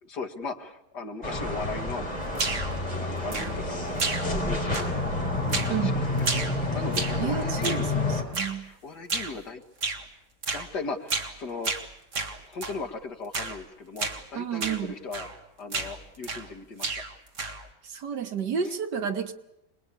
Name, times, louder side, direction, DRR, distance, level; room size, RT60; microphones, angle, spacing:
voice 1, 0.0-2.1 3.0-3.9 4.2-5.0 5.4-6.3 6.7-7.9 8.3-9.6 10.5-11.7 12.5-15.3 15.6-16.9, left 3 dB, 75° left, 3 dB, 2.4 m, -38 dB
sound 1, 1.2-8.2, left 2 dB, 25° left, 4.6 m, -29 dB
sound 2, 2.3-2.8 3.3-3.7 4.0-4.5 4.7-5.1 5.5-5.8 6.2-7.2 7.6-7.9 8.3-8.6 9.1-9.4 9.8-10.0 10.4-10.7 11.1-11.4 11.6-12.8 13.3-13.6 14.0-14.2 14.6-14.8 15.1-15.4 15.7-16.5 16.8-17.7, right 3 dB, 45° right, 2.2 m, -32 dB
voice 2, 7.2-8.7 14.4-15.0 17.8-19.3, right 7 dB, 90° right, 7 dB, 2.1 m, -31 dB
26.5 x 21.0 x 8.5 m, 0.87 s
omnidirectional pair, 1.8 m